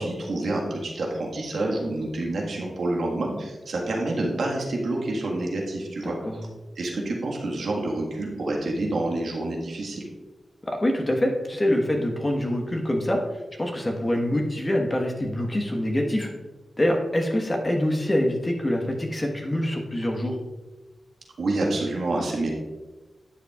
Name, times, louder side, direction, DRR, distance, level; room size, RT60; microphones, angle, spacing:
voice 1, 0.0-6.1 6.8-10.1 21.4-22.5, right 2 dB, 80° right, -1 dB, 1.6 m, -28 dB
voice 2, 6.0-6.4 10.6-16.3 16.8-20.4, left 1 dB, 30° left, 1 dB, 1.3 m, -25 dB
11.5 x 6.8 x 2.4 m, 1.2 s
cardioid pair, 40°, 0 cm